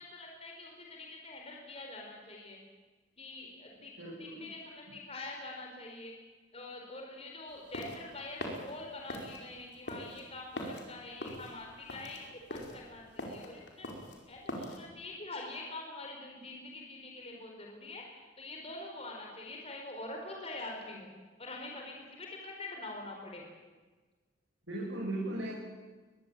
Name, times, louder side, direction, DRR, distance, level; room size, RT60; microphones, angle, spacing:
voice 1, 0.0-2.6 3.2-6.1 6.5-13.9 14.3-18.1 18.4-21.1 21.4-23.4, left 2 dB, 30° left, 0 dB, 4.8 m, -45 dB
voice 2, 4.0-4.4 24.7-25.5, right 1 dB, 80° right, -4 dB, 6.3 m, -37 dB
sound 1, 7.5-14.8, left 1 dB, 60° left, 5.0 m, -42 dB
22.5 x 22.0 x 9.1 m, 1.3 s
head